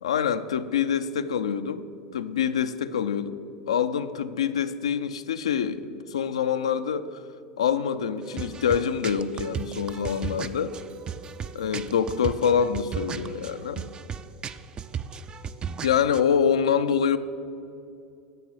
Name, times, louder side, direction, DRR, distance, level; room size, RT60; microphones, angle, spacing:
voice 1, 0.0-1.9 2.1-3.4 3.7-7.2 7.6-10.7 11.5-13.9 15.8-17.2, left 7 dB, 90° left, 11 dB, 0.4 m, -25 dB
sound 1, 8.2-16.2, right 7 dB, 30° right, 0.4 m, -36 dB
11.0 x 4.7 x 7.7 m, 2.6 s
hypercardioid pair, 95°, 3 cm